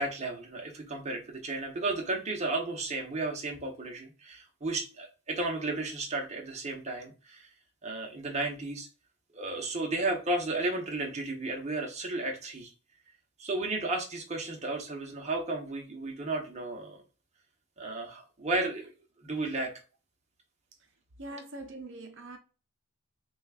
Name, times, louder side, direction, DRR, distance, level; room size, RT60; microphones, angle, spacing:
voice 1, 0.0-7.5 7.8-8.9 9.3-12.7 13.4-17.0 17.8-18.9 19.2-19.7, right 2 dB, 30° right, 1.0 m, -33 dB
voice 2, 21.2-22.4, right 2 dB, 60° right, 0.7 m, -43 dB
6.2 x 2.4 x 2.4 m
head